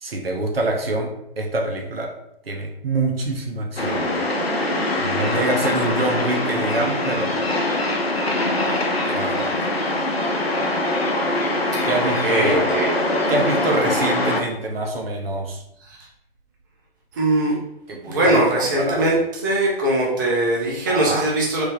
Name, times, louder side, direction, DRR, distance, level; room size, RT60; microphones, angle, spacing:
voice 1, 0.0-2.1 2.5-4.0 5.0-7.4 8.6-9.7 11.8-12.6 13.3-15.6 17.9-19.0 20.9-21.3, right 2 dB, 75° right, 2 dB, 0.7 m, -25 dB
sound 1, 3.8-14.4, left 1 dB, 85° left, 0.6 m, -23 dB
voice 2, 12.2-13.0 17.2-17.5 18.0-19.2 19.4-21.6, right 1 dB, 20° right, -3 dB, 0.4 m, -20 dB
3.2 x 2.0 x 3.4 m, 0.79 s
figure-of-eight pair, 125°, 30 cm